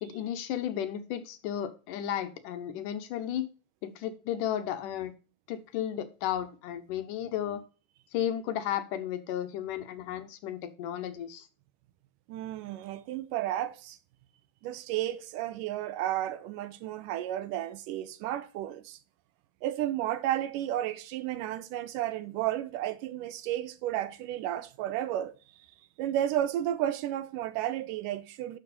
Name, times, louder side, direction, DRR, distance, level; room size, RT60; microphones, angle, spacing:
voice 1, 0.0-3.5 3.8-5.1 5.5-7.6 8.1-11.5, left 10 dB, 75° left, 2.5 m, -34 dB
voice 2, 12.3-14.0 14.6-19.0 19.6-25.3 26.0-28.6, right 12 dB, 80° right, 2.2 m, -32 dB
11.0 x 6.3 x 4.2 m
omnidirectional pair, 3.9 m